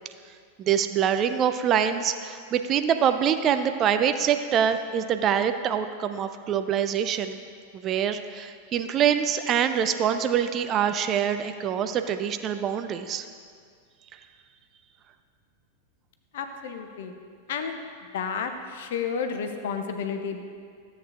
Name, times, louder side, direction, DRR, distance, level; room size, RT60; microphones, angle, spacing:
voice 1, 0.6-7.4 7.7-13.3, right 8 dB, 30° right, 9 dB, 0.4 m, -25 dB
voice 2, 16.3-17.1 17.5-17.8 18.1-20.4, left 6 dB, 55° left, 6 dB, 0.7 m, -31 dB
13.5 x 7.9 x 2.5 m, 2.1 s
figure-of-eight pair, 90°, 0 cm